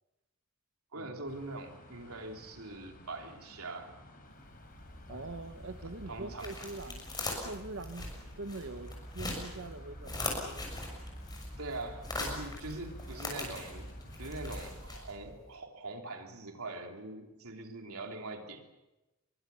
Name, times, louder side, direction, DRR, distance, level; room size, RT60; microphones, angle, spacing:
voice 1, 0.9-3.9 6.1-6.7 11.6-13.9 14.2-18.6, right 2 dB, 80° right, 3 dB, 3.3 m, -43 dB
sound 1, 1.3-14.7, left 1 dB, 40° left, 4.6 m, -55 dB
sound 2, 4.4-15.4, left 2 dB, 20° left, 6.6 m, -41 dB
voice 2, 5.1-7.1 7.4-10.7, right 2 dB, 60° right, 10 dB, 1.1 m, -43 dB
26.0 x 23.5 x 7.0 m, 1.0 s
head